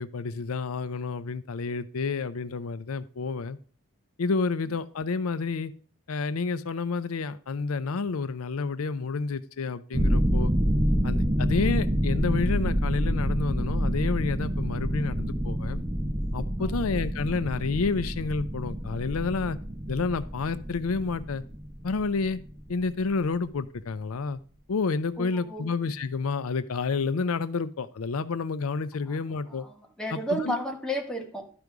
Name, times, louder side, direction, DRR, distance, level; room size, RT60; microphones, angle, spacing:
voice 1, 0.0-3.6 4.2-5.7 6.1-10.5 11.0-15.8 16.3-19.6 19.9-21.4 21.8-22.4 22.7-24.4 24.7-29.6 30.1-30.6, left 4 dB, 80° left, 14 dB, 0.5 m, -29 dB
sound 1, 9.9-23.0, equal, 20° right, 0.7 m, -28 dB
voice 2, 25.2-25.7 29.1-29.2 29.4-31.5, equal, 5° left, 1 dB, 1.4 m, -33 dB
12.0 x 5.2 x 4.7 m, 0.41 s
head